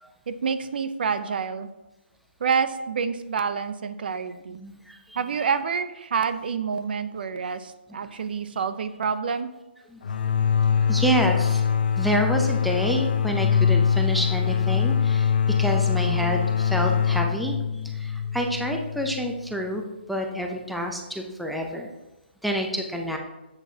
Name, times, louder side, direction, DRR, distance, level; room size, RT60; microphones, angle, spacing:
voice 1, 0.3-1.7 2.4-4.6 5.2-9.5, right 6 dB, 55° right, 12 dB, 0.6 m, -28 dB
voice 2, 4.5-5.2 7.3-7.4 9.9-10.0 10.8-11.6 12.0-15.3 15.6-17.6 17.8-21.9 22.4-23.2, equal, ahead, 2 dB, 0.6 m, -28 dB
sound 1, 10.0-19.5, left 7 dB, 55° left, 0.6 m, -23 dB
10.5 x 8.1 x 2.8 m, 0.99 s
hypercardioid pair, 160°, 6 cm